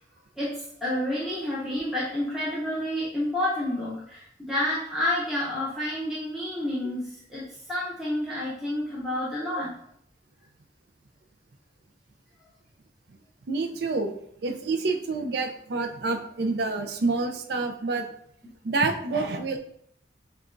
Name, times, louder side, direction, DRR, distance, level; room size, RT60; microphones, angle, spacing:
voice 1, 0.4-9.8, left 1 dB, ahead, -9 dB, 0.7 m, -29 dB
voice 2, 13.5-14.1 14.4-18.1 18.6-19.6, right 3 dB, 60° right, 5 dB, 0.4 m, -27 dB
6.5 x 2.3 x 2.5 m, 0.70 s
head